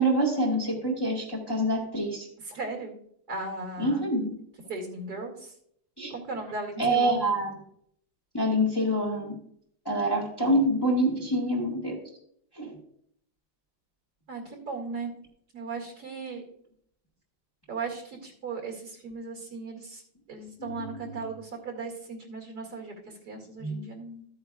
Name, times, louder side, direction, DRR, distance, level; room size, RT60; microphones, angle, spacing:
voice 1, 0.0-2.3 3.8-4.3 6.0-6.1 6.8-7.6 8.3-9.3 9.8-12.0 12.5-12.8 20.6-20.9 23.6-23.8, right 1 dB, 15° left, -2 dB, 1.6 m, -26 dB
voice 2, 2.4-3.0 3.3-4.1 4.7-5.5 6.1-7.4 14.3-15.1 15.5-16.4 17.7-20.0 20.3-24.3, right 3 dB, 55° right, 2 dB, 2.8 m, -37 dB
13.0 x 8.7 x 2.4 m, 0.68 s
omnidirectional pair, 2.1 m